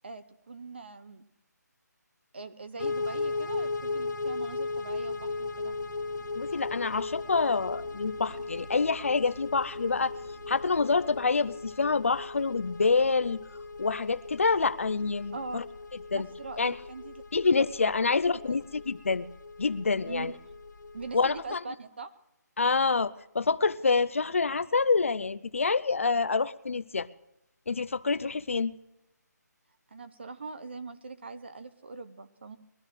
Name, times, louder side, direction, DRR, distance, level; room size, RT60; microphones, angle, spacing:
voice 1, 0.0-1.2 2.3-5.8 15.3-15.6 16.1-17.9 18.5-18.6 20.0-20.4 20.9-22.1 23.9-24.0 29.9-32.6, right 4 dB, 35° right, 11 dB, 0.9 m, -42 dB
sound 1, 2.8-21.5, left 3 dB, 85° left, 0.8 m, -37 dB
sound 2, 4.8-11.2, right 1 dB, 85° right, 4.8 m, -53 dB
voice 2, 6.3-10.1 10.5-13.4 13.8-15.6 16.1-16.3 16.6-16.8 17.3-19.3 19.6-20.3 21.1-21.6 22.6-27.1 27.7-28.7, left 4 dB, 45° left, 15 dB, 0.5 m, -27 dB
22.0 x 13.0 x 3.3 m, 0.82 s
hypercardioid pair, 180°, 10 cm